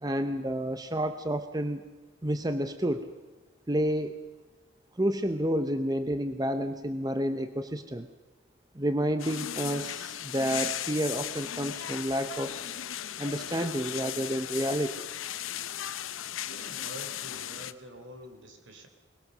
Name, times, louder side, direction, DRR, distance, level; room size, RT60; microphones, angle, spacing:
voice 1, 0.0-1.8 2.2-3.1 3.7-4.2 4.9-8.1 8.7-12.6 13.2-15.0, equal, 20° right, 9 dB, 0.7 m, -30 dB
sound 1, 9.2-17.7, left 11 dB, 90° left, 0.8 m, -36 dB
voice 2, 16.5-18.9, right 1 dB, 70° right, 6 dB, 3.3 m, -47 dB
22.0 x 21.0 x 6.6 m, 1.3 s
head